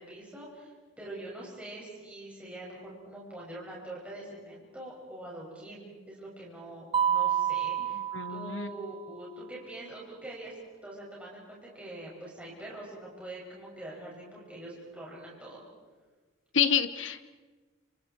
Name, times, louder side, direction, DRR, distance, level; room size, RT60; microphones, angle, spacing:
voice 1, 0.0-8.0 8.3-15.6, right 1 dB, 5° right, -5 dB, 6.9 m, -44 dB
Mallet percussion, 6.9-9.0, right 9 dB, 25° right, 0.7 m, -29 dB
voice 2, 8.1-8.7 16.5-17.3, left 7 dB, 65° left, 11 dB, 1.2 m, -28 dB
30.0 x 27.5 x 4.7 m, 1.4 s
head